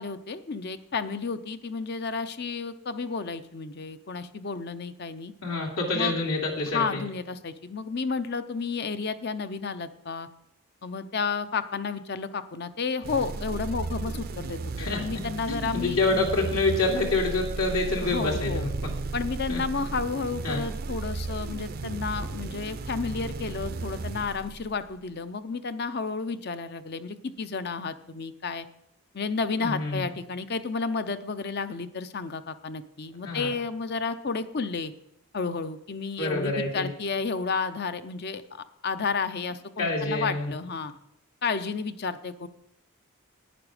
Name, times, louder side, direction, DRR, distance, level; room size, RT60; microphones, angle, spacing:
voice 1, 0.0-5.3 5.9-6.2 6.7-10.3 10.8-16.2 18.0-18.7 19.1-28.7 29.1-34.9 35.3-40.9 41.4-42.5, left 4 dB, 45° left, 12 dB, 0.6 m, -32 dB
voice 2, 5.4-7.0 14.8-15.0 15.5-18.7 19.5-19.6 20.4-20.6 29.6-30.0 33.2-33.5 36.2-36.9 39.8-40.5, left 2 dB, 75° left, -1 dB, 2.8 m, -27 dB
sound 1, 13.0-25.0, right 3 dB, 45° right, 0.5 m, -34 dB
11.0 x 9.7 x 5.0 m, 0.77 s
head